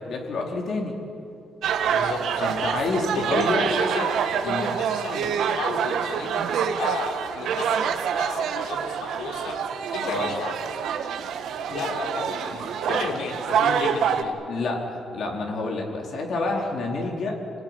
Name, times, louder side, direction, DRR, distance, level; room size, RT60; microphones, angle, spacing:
voice 1, 0.1-0.9 2.4-3.6 4.4-4.6 10.0-10.3 12.9-13.0 14.5-17.4, left 3 dB, 65° left, 0 dB, 4.4 m, -28 dB
sound 1, 1.6-14.2, right 8 dB, 75° right, 1.5 m, -26 dB
voice 2, 1.9-2.5 3.1-4.1 4.4-7.9 8.2-9.6 9.9-10.6 11.7-14.4, left 4 dB, 85° left, 2 dB, 3.9 m, -33 dB
26.0 x 17.5 x 9.9 m, 2.6 s
cardioid pair, 110°, 0 cm